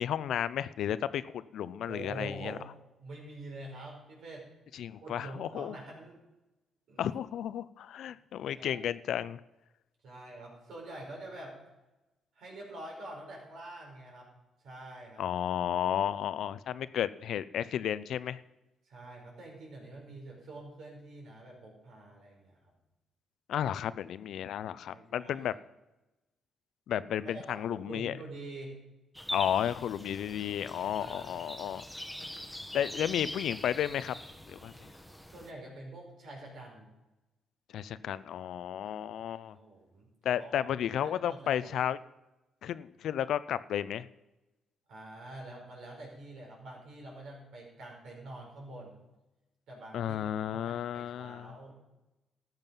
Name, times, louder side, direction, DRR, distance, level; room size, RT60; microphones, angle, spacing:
voice 1, 0.0-2.6 4.7-5.8 7.0-9.4 15.2-18.4 23.5-25.5 26.9-28.1 29.3-31.8 32.7-34.2 34.5-34.7 37.7-39.6 40.2-42.0 42.6-44.1 49.9-51.5, left 10 dB, 75° left, 16 dB, 0.5 m, -33 dB
voice 2, 1.9-2.7 3.0-4.5 4.9-6.2 6.9-7.1 8.1-8.8 10.0-11.6 12.4-14.3 14.6-15.2 18.8-22.7 24.6-25.5 27.2-28.8 31.0-31.5 32.8-33.0 35.3-36.9 38.8-40.1 40.4-40.6 41.0-41.7 44.9-49.0 49.7-50.2 50.5-51.7, right 2 dB, 70° right, -1 dB, 5.3 m, -46 dB
sound 1, 29.1-35.5, left 1 dB, ahead, 1.2 m, -43 dB
13.5 x 9.0 x 5.5 m, 1.0 s
cardioid pair, 90°, 0 cm